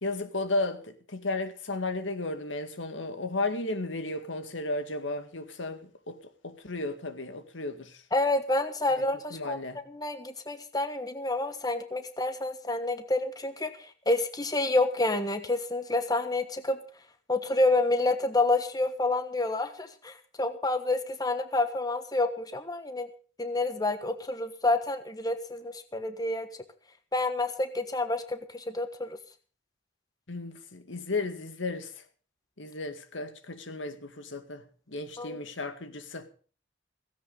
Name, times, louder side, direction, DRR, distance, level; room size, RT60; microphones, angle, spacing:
voice 1, 0.0-6.2 6.4-8.0 9.3-9.8 30.3-31.9 32.6-34.6 34.9-36.3, left 2 dB, 75° left, 2.1 m, -34 dB
voice 2, 8.1-9.6 9.9-16.8 17.3-23.1 23.4-26.5 27.1-29.2 35.2-35.4, left 2 dB, 20° left, 1.4 m, -28 dB
17.0 x 16.0 x 4.0 m
head